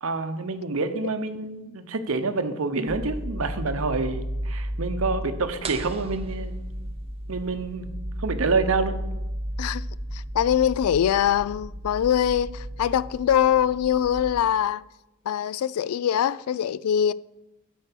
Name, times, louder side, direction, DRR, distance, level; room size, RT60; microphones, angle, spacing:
voice 1, 0.0-6.5 7.3-7.9 8.2-9.0, right 3 dB, 70° right, 0.8 m, -27 dB
sound 1, 2.9-14.4, equal, 50° right, 1.0 m, -34 dB
sound 2, 5.6-7.3, right 6 dB, 25° right, 0.5 m, -40 dB
voice 2, 10.1-14.8 15.3-17.1, left 9 dB, 90° left, 0.3 m, -23 dB
8.9 x 4.6 x 6.7 m
head